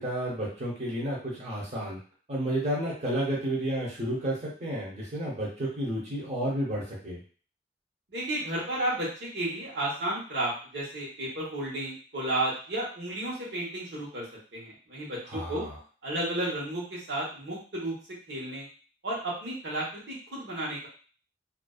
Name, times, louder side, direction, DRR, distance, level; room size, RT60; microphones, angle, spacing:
voice 1, 0.0-2.0 2.3-7.2 15.3-15.8, right 1 dB, 40° right, -5 dB, 0.8 m, -31 dB
voice 2, 8.1-14.2 14.5-15.6 16.0-17.9 18.3-18.7 19.0-20.9, right 1 dB, 90° right, -5 dB, 1.0 m, -32 dB
2.5 x 2.2 x 2.3 m, 0.40 s
head